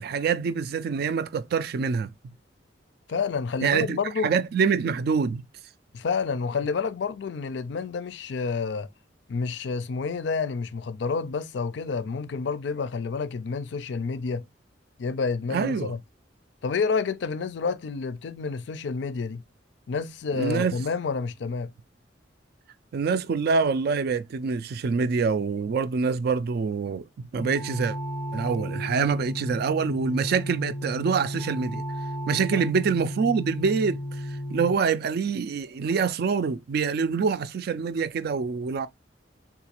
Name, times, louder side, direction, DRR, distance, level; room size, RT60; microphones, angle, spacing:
voice 1, 0.0-2.1 3.6-5.4 15.5-15.9 20.3-20.8 22.9-28.0 28.3-31.8 32.3-34.0 34.5-38.9, right 5 dB, 60° right, 0.3 m, -25 dB
voice 2, 3.1-4.3 5.9-8.9 9.3-14.4 15.0-16.0 16.6-19.4 19.9-21.7 32.5-32.6, left 5 dB, 70° left, 0.4 m, -29 dB
sound 1, 27.4-34.8, equal, 5° left, 0.5 m, -33 dB
3.8 x 2.4 x 2.9 m
head